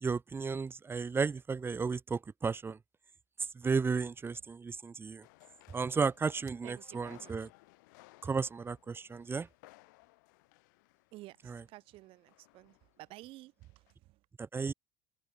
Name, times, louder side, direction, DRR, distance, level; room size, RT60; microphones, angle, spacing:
voice 1, 0.0-2.8 3.6-5.2 5.7-7.5 8.2-9.5 11.5-11.6 14.5-14.7, right 5 dB, 25° right, 0.6 m, -33 dB
sound 1, 5.2-13.4 13.6-13.9, left 24 dB, 80° left, 7.1 m, -62 dB
voice 2, 6.6-7.3 11.1-13.7 14.0-14.2, right 18 dB, 65° right, 4.1 m, -52 dB
hypercardioid pair, 70°, 10 cm